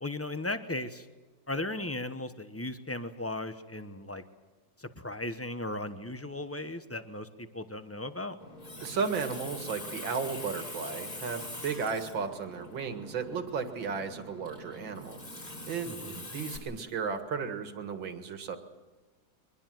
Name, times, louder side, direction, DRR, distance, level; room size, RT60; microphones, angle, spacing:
voice 1, 0.0-1.1 1.5-4.2 4.8-8.4 15.8-16.2, left 2 dB, 20° left, 9 dB, 0.4 m, -36 dB
Water tap faucet, 8.4-16.6, left 1 dB, 45° left, 5.9 m, -43 dB
voice 2, 8.8-15.2 15.7-18.6, right 5 dB, 70° right, 7 dB, 2.5 m, -34 dB
23.5 x 21.0 x 7.7 m, 1.3 s
omnidirectional pair, 2.2 m